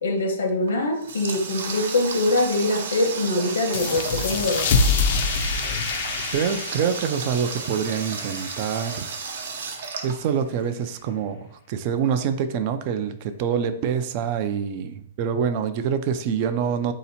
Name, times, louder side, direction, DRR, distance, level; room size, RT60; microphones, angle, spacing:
voice 1, 0.0-4.7, left 2 dB, 80° left, 4 dB, 1.0 m, -23 dB
Water tap faucet, 0.6-10.8, right 5 dB, 65° right, 0.8 m, -33 dB
sound 1, 3.7-9.0, left 4 dB, 40° left, 0.4 m, -26 dB
voice 2, 6.3-9.0 10.0-16.9, right 7 dB, 30° right, 10 dB, 0.4 m, -26 dB
4.1 x 2.8 x 4.1 m, 0.69 s
hypercardioid pair, 170°, 0 cm